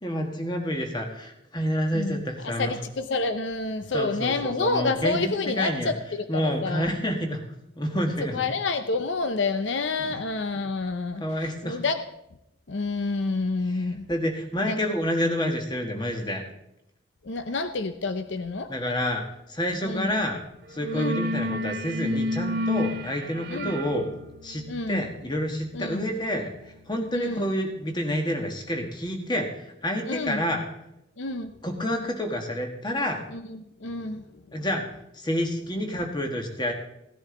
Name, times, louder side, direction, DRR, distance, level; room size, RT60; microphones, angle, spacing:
voice 1, 0.0-2.8 3.9-7.4 7.8-8.5 10.0-10.2 11.2-11.8 13.6-16.4 18.7-20.4 20.7-24.1 24.4-30.7 31.6-33.2 34.5-34.8 35.1-36.7, equal, 20° left, 3 dB, 1.4 m, -29 dB
voice 2, 2.6-6.0 6.6-6.9 8.3-11.2 11.6-12.0 12.7-14.1 14.7-14.8 17.3-18.7 19.9-20.1 20.9-21.2 23.5-23.7 24.7-25.0 25.8-26.1 27.1-27.4 30.1-30.4 31.2-31.5 33.8-34.2, left 3 dB, 70° left, 9 dB, 0.7 m, -28 dB
Corto Grave, 20.1-20.3 20.6-27.3, left 1 dB, 50° right, 0.9 m, -33 dB
17.0 x 10.5 x 3.8 m, 0.84 s
head